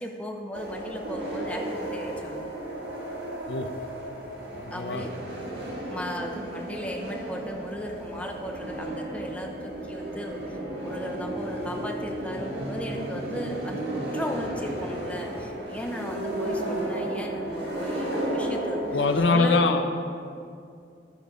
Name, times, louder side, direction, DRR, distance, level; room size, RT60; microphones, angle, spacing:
voice 1, 0.0-2.5 4.7-5.2 5.9-19.0 19.3-19.6, equal, 5° left, 2 dB, 0.6 m, -36 dB
sound 1, 0.5-19.2, right 1 dB, 75° right, 1.7 m, -33 dB
voice 2, 4.5-5.0 18.9-19.8, left 3 dB, 85° left, 6 dB, 0.6 m, -23 dB
12.0 x 5.1 x 5.1 m, 2.4 s
head